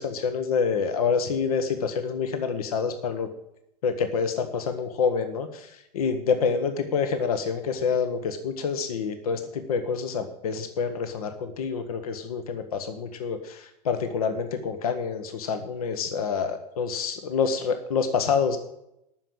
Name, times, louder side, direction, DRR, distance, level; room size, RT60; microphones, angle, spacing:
voice 1, 0.0-3.3 3.8-18.6, left 5 dB, 70° left, 8 dB, 1.1 m, -27 dB
8.9 x 6.4 x 8.5 m, 0.81 s
figure-of-eight pair, 85°, 20 cm